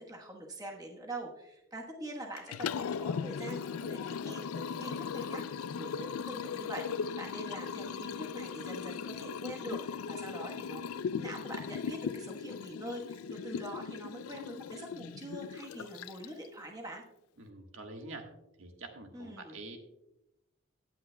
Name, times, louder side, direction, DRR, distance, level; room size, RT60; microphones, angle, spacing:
voice 1, 0.0-17.0 19.1-19.6, right 1 dB, 15° right, 1 dB, 1.1 m, -44 dB
Liquid, 2.4-16.5, left 6 dB, 90° left, 0.4 m, -38 dB
voice 2, 17.4-18.2 18.6-19.8, right 2 dB, 70° right, 3 dB, 1.5 m, -46 dB
16.5 x 9.4 x 2.2 m, 0.87 s
head